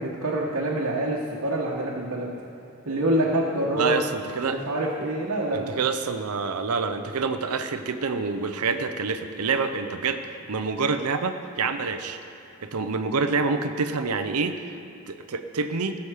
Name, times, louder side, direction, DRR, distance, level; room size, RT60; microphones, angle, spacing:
voice 1, 0.0-2.3 2.8-4.0 4.4-5.8, right 1 dB, 65° right, -5 dB, 1.4 m, -26 dB
voice 2, 3.8-4.6 5.5-12.2 12.6-14.7 15.1-16.0, right 4 dB, 85° right, 8 dB, 0.7 m, -27 dB
17.5 x 7.1 x 5.0 m, 3.0 s
head